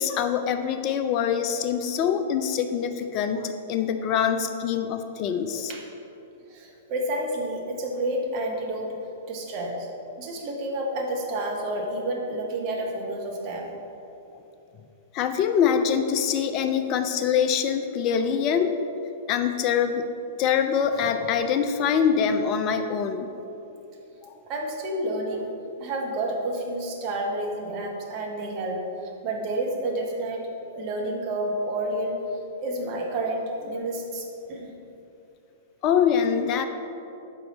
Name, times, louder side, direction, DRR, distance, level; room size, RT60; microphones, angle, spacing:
voice 1, 0.0-5.7 15.1-18.7 19.3-20.1 20.4-23.3 24.2-24.3 35.8-36.7, left 7 dB, 35° left, 8 dB, 0.4 m, -24 dB
voice 2, 6.5-9.0 9.3-9.9 10.2-13.8 24.5-25.5 25.8-34.7, right 1 dB, 35° right, 0 dB, 0.9 m, -30 dB
5.6 x 4.4 x 3.9 m, 2.9 s
figure-of-eight pair, 105°, 0 cm